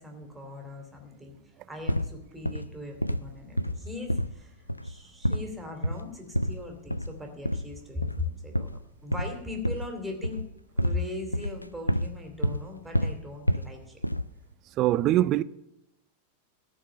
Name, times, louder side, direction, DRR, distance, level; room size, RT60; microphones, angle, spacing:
voice 1, 0.0-1.4 1.7-4.5 4.8-10.4 10.8-14.0, left 2 dB, 5° right, 2.6 m, -39 dB
sound 1, 1.9-2.2 2.4-2.8 3.0-3.3 3.6-4.4 4.7-5.0 5.2-5.5 5.8-6.1 6.3-6.6 6.9-7.2 7.4-7.7 8.0-8.3 8.5-10.0 10.2-11.1 11.3-12.1 12.4-12.7 12.9-13.7 14.0-14.4, equal, 90° left, 0.3 m, -29 dB
voice 2, 14.8-15.4, right 14 dB, 35° right, 0.4 m, -22 dB
14.0 x 4.7 x 9.0 m
figure-of-eight pair, 90°, 0 cm